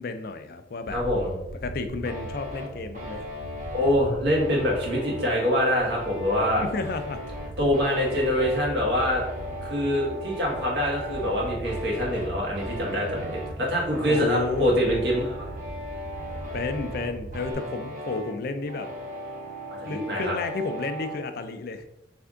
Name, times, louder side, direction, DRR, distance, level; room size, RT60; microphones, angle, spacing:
voice 1, 0.0-1.0 1.6-3.2 6.6-7.2 14.1-14.8 16.5-18.9 19.8-21.8, left 3 dB, 55° left, 8 dB, 0.4 m, -31 dB
sound 1, 0.8-17.5, right 1 dB, 20° right, 0.5 m, -40 dB
voice 2, 0.9-1.3 3.7-6.6 7.6-9.2 9.6-15.3 19.8-20.3, equal, 70° right, -3 dB, 1.5 m, -25 dB
sound 2, 2.0-21.2, equal, 45° right, 1.1 m, -38 dB
3.4 x 3.4 x 3.7 m, 0.87 s
head